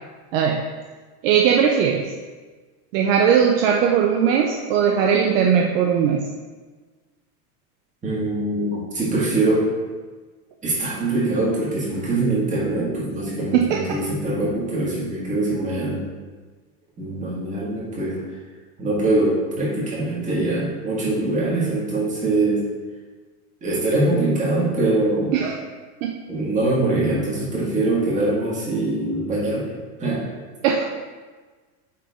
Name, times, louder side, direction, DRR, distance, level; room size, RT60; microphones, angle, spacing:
voice 1, 1.2-2.1 2.9-6.2 13.5-13.8 25.3-25.6 26.0-26.2 30.6-30.9, right 7 dB, 55° right, 1 dB, 0.7 m, -19 dB
voice 2, 8.0-9.7 10.6-16.0 17.0-18.3 18.8-22.6 23.6-25.3 26.3-29.7 30.0-30.2, right 2 dB, 15° right, -6 dB, 1.9 m, -23 dB
8.9 x 3.6 x 3.6 m, 1.4 s
supercardioid pair, 155°, 46 cm